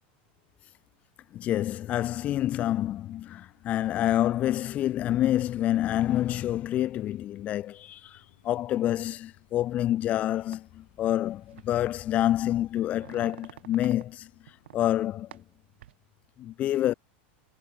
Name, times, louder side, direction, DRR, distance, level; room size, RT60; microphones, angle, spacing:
voice 1, 1.3-14.3 14.7-15.4 16.4-16.9, left 12 dB, 25° left, 0.4 m, -27 dB
sound 1, 2.2-14.9, left 16 dB, 70° left, 5.7 m, -66 dB
sound 2, 10.5-10.6 11.5-11.8 12.2-14.1 14.5-14.9 15.3-15.9, right 13 dB, 90° right, 4.4 m, -48 dB
supercardioid pair, 165°, 6 cm